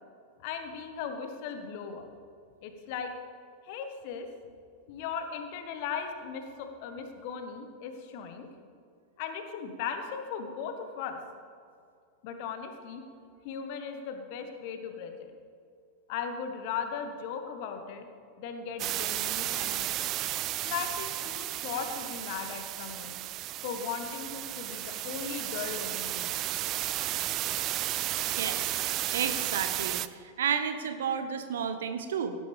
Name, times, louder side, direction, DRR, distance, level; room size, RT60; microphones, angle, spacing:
voice 1, 0.4-2.1 2.6-3.1 3.6-4.3 4.9-8.5 9.2-11.2 12.2-13.0 13.4-15.3 16.1-18.1 18.4-19.9 20.6-23.2 23.6-26.4, left 6 dB, 45° left, 6 dB, 1.4 m, -37 dB
sound 1, 18.8-30.1, right 14 dB, 35° right, 0.4 m, -33 dB
voice 2, 28.3-28.7 29.1-30.0 30.4-32.4, right 7 dB, 60° right, 9 dB, 0.8 m, -31 dB
17.0 x 10.5 x 3.5 m, 2.3 s
figure-of-eight pair, 90°, 0 cm